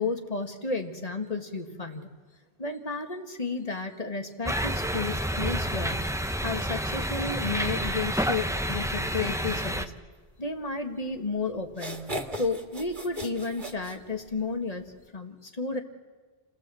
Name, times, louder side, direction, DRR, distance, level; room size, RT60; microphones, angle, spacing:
voice 1, 0.0-2.1 2.6-6.0 6.4-9.9 10.4-12.1 12.4-14.8 15.1-15.8, left 3 dB, 40° left, 5 dB, 1.9 m, -32 dB
sound 1, 4.5-9.9, equal, 5° right, 0.8 m, -29 dB
sound 2, 11.1-11.2 11.7-14.6, right 1 dB, 50° right, 2.4 m, -37 dB
29.5 x 18.0 x 7.7 m, 1.4 s
omnidirectional pair, 1.0 m